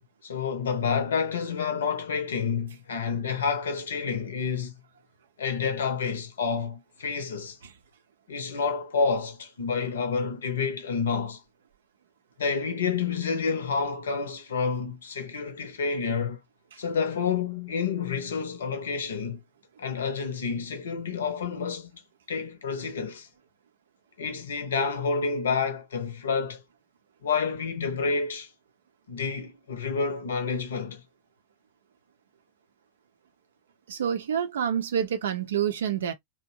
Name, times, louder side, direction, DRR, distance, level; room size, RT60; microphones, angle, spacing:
voice 1, 0.2-4.7 5.4-7.6 8.3-11.4 12.4-16.4 16.8-19.4 19.8-22.0 22.3-23.3 24.2-26.6 27.2-28.5 29.1-31.0, left 5 dB, 65° left, 0.7 m, -29 dB
voice 2, 33.9-36.1, right 8 dB, 65° right, 0.5 m, -28 dB
2.7 x 2.1 x 2.6 m
figure-of-eight pair, 90°, 0 cm